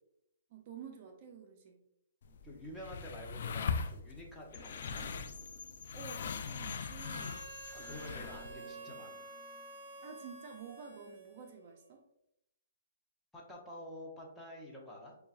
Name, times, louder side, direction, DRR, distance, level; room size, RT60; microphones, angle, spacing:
voice 1, 0.5-1.8 5.9-7.4 10.0-12.0, right 6 dB, 40° right, 3 dB, 0.5 m, -50 dB
sound 1, 2.2-8.5, left 5 dB, 60° left, 0.3 m, -41 dB
voice 2, 2.3-5.0 7.7-9.4 13.3-15.2, left 1 dB, 5° left, -3 dB, 0.7 m, -49 dB
sound 2, 4.5-10.3, left 5 dB, 40° left, 0.8 m, -52 dB
Harmonica, 6.9-11.8, right 3 dB, 55° right, 1.1 m, -50 dB
5.3 x 2.3 x 2.4 m, 0.81 s
hypercardioid pair, 145°, 0 cm